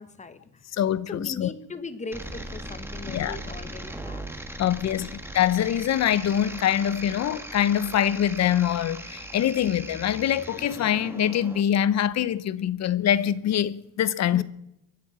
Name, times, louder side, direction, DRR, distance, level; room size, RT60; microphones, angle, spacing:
voice 1, 0.0-0.6 1.1-4.2 4.6-5.1 14.3-14.4, left 3 dB, 20° left, 1.2 m, -39 dB
voice 2, 0.7-1.5 3.1-3.4 4.6-5.1 5.3-14.4, left 10 dB, 55° left, 0.8 m, -24 dB
sound 1, 2.1-11.6, right 1 dB, 5° right, 1.4 m, -39 dB
23.0 x 7.8 x 7.1 m
cardioid pair, 140°, 33 cm